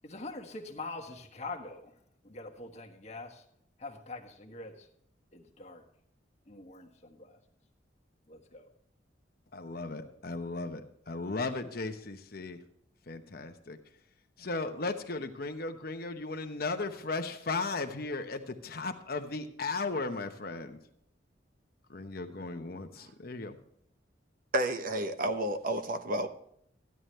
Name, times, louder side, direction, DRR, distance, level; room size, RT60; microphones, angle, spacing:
voice 1, 0.0-1.9 2.2-3.4 3.8-4.9 5.3-5.8 6.5-7.4 8.3-8.7, left 3 dB, 35° left, 1.5 m, -44 dB
voice 2, 9.5-12.6 13.1-13.8 14.4-20.8 21.9-23.6, left 3 dB, 55° left, 1.0 m, -36 dB
voice 3, 24.5-26.3, right 1 dB, 50° right, 0.8 m, -30 dB
14.5 x 11.0 x 3.3 m
head